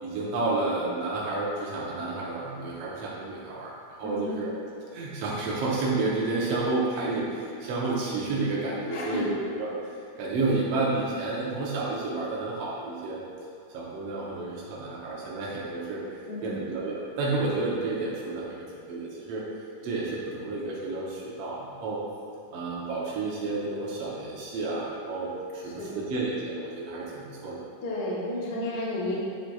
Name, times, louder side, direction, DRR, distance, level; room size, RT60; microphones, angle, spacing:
voice 1, 0.0-3.7 4.0-4.5 4.9-13.2 13.7-16.0 16.4-19.4 19.8-22.0 22.5-27.6, right 3 dB, 65° right, -6 dB, 1.8 m, -30 dB
voice 2, 4.0-4.4 8.9-9.2 16.3-16.5 25.8-26.1 27.8-29.2, left 1 dB, 55° left, -5 dB, 1.2 m, -32 dB
7.7 x 7.3 x 2.3 m, 2.4 s
omnidirectional pair, 3.4 m